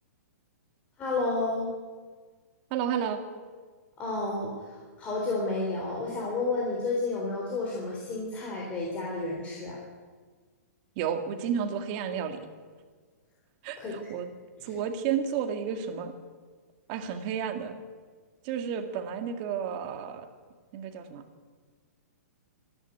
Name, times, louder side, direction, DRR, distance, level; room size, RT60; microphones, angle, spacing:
voice 1, 1.0-1.7 4.0-9.8 13.8-14.0, left 3 dB, 15° left, -3 dB, 3.6 m, -31 dB
voice 2, 2.7-3.2 11.0-12.4 13.6-14.3 14.6-16.1 16.9-17.8 18.4-20.3 20.7-21.2, right 8 dB, 30° right, 6 dB, 2.1 m, -31 dB
25.5 x 11.0 x 9.5 m, 1.5 s
hypercardioid pair, 170°, 9 cm